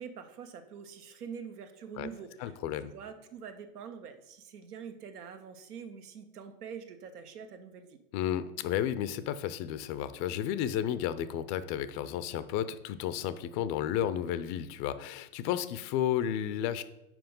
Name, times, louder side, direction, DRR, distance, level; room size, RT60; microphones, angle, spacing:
voice 1, 0.0-2.6 2.8-8.0, right 6 dB, 90° right, 8 dB, 1.0 m, -45 dB
voice 2, 2.4-2.9 8.1-16.8, left 10 dB, 40° left, 14 dB, 0.5 m, -32 dB
5.9 x 4.7 x 5.3 m, 0.92 s
hypercardioid pair, 110°, 44 cm